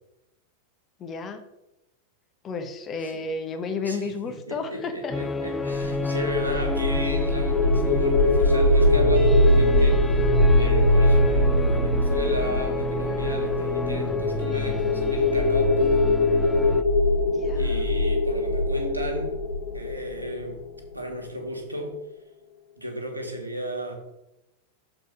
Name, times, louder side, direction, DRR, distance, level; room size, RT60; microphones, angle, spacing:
voice 1, 1.0-1.4 2.4-5.2 17.2-17.8, left 4 dB, 25° left, 6 dB, 1.2 m, -32 dB
voice 2, 4.5-10.2 10.5-16.1 17.5-19.3 19.7-20.6 20.9-22.0 22.8-23.9, equal, 85° right, 2 dB, 1.6 m, -33 dB
sound 1, 5.1-16.8, left 2 dB, 10° left, 0.4 m, -30 dB
sound 2, 6.0-20.8, left 1 dB, 55° left, 1.7 m, -22 dB
6.9 x 4.3 x 6.5 m, 0.89 s
figure-of-eight pair, 90°, 0 cm